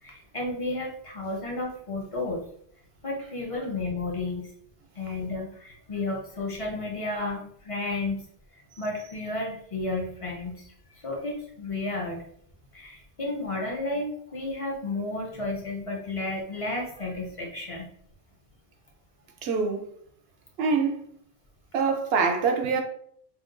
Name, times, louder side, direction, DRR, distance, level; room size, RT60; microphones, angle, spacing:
voice 1, 0.0-2.4 3.0-4.5 5.0-8.2 8.8-12.2 12.7-17.9, left 2 dB, 40° left, 0.6 m, -32 dB
voice 2, 19.4-19.9 20.6-21.0 21.7-22.8, right 5 dB, 75° right, 0.8 m, -24 dB
2.7 x 2.2 x 3.7 m
omnidirectional pair, 1.1 m